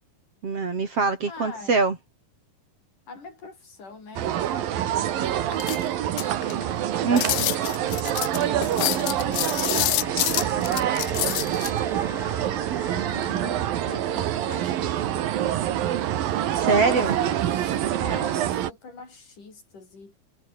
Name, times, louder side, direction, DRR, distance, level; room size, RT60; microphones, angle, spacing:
voice 1, 0.4-2.0 7.0-7.4 16.7-17.2, right 4 dB, 45° right, 4.1 m, -23 dB
voice 2, 1.3-1.8 3.1-7.0 7.6-12.3 12.9-15.3 16.4-20.1, left 4 dB, 60° left, 8.3 m, -44 dB
sound 1, 4.2-18.7, right 11 dB, 75° right, 3.4 m, -26 dB
sound 2, 5.5-6.6 7.2-11.7, left 20 dB, 80° left, 2.0 m, -27 dB
sound 3, 8.6-15.7, equal, ahead, 4.6 m, -41 dB
omnidirectional pair, 4.1 m